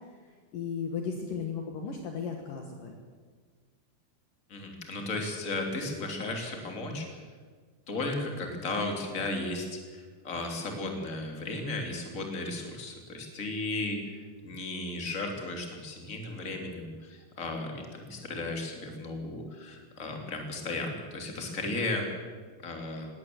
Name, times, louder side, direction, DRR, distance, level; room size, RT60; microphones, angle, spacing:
voice 1, 0.5-3.0, left 6 dB, 60° left, 3 dB, 2.9 m, -35 dB
voice 2, 4.5-7.2 7.9-22.1 22.6-23.1, left 2 dB, 20° left, 2 dB, 3.2 m, -35 dB
20.5 x 17.0 x 7.9 m, 1.5 s
omnidirectional pair, 4.8 m